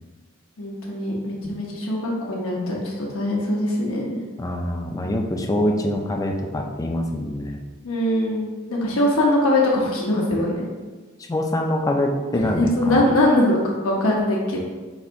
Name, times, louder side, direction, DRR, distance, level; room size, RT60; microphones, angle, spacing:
voice 1, 0.6-4.2 7.8-10.7 12.3-13.6 13.8-14.6, left 1 dB, 75° left, -3 dB, 1.0 m, -22 dB
voice 2, 4.4-7.6 11.3-13.1, left 1 dB, 15° left, 2 dB, 0.4 m, -24 dB
4.1 x 2.5 x 4.6 m, 1.3 s
head